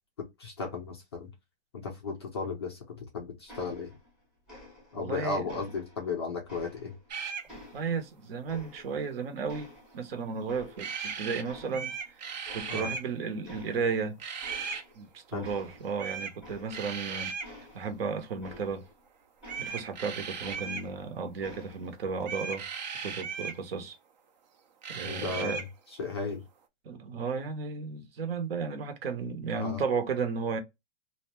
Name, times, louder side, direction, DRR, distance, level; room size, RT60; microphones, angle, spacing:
voice 1, 0.4-1.3 1.7-3.9 4.9-7.0 12.7-12.9 15.3-15.5 25.0-25.6 26.0-26.4 29.6-29.8, left 4 dB, 25° left, 0.4 m, -35 dB
sound 1, 3.5-4.2 4.5-5.1 5.5-7.1 7.5-9.1 9.5-11.1 11.4-12.1 12.4-13.1 13.4-14.0 14.4-15.1 15.4-19.0 19.4-21.1 21.4-22.0, left 1 dB, ahead, 0.7 m, -50 dB
voice 2, 4.9-5.5 7.7-14.2 14.9-17.3 17.7-18.8 19.6-22.7 23.0-24.0 24.9-25.6 26.8-30.6, right 5 dB, 55° right, 0.9 m, -34 dB
sound 2, 7.1-7.5 10.8-11.4 11.7-13.1 14.2-14.8 16.0-16.4 16.7-17.5 19.4-20.9 22.2-23.6 24.8-25.7, right 6 dB, 40° right, 0.5 m, -37 dB
2.7 x 2.2 x 2.9 m
hypercardioid pair, 165°, 35 cm